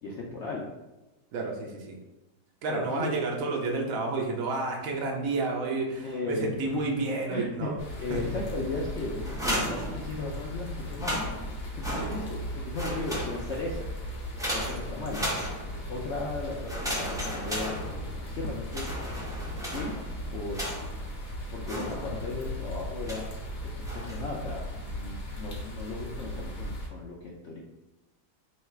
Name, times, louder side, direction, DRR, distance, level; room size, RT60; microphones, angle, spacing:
voice 1, 0.0-0.7 2.7-3.1 6.0-6.8 7.3-7.7 8.0-11.2 11.7-13.9 14.5-15.3 15.9-17.8 18.2-18.9 19.7-19.9 20.3-20.6 21.5-23.3 23.6-27.6, left 2 dB, 70° left, -3 dB, 0.7 m, -36 dB
voice 2, 1.3-2.0 2.6-7.8 8.1-8.2 12.0-12.2, right 3 dB, 65° right, 0 dB, 1.1 m, -30 dB
sound 1, 7.8-26.9, equal, 45° left, 0.9 m, -37 dB
sound 2, 9.2-10.5 10.9-12.5 12.7-13.7 14.4-15.9 16.7-18.3 18.7-21.1 21.7-22.4 23.0-23.4 23.8-24.3, equal, 5° right, 0.3 m, -35 dB
3.1 x 2.8 x 4.4 m, 1.0 s
omnidirectional pair, 1.7 m